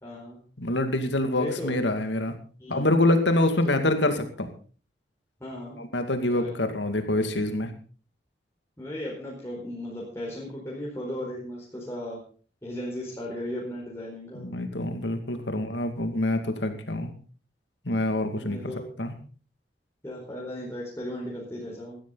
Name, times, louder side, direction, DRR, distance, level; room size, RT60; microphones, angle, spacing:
voice 1, 0.0-0.4 1.3-1.8 2.6-2.9 5.4-5.8 6.2-6.5 8.8-12.2 12.6-14.4 18.4-18.9 20.0-22.0, left 1 dB, 15° left, -4 dB, 4.5 m, -36 dB
voice 2, 0.6-2.3 2.7-4.5 5.8-7.7 14.3-17.1 17.8-18.7 19.0-19.2, left 1 dB, 90° left, 7 dB, 2.3 m, -26 dB
16.0 x 13.0 x 4.0 m, 0.40 s
head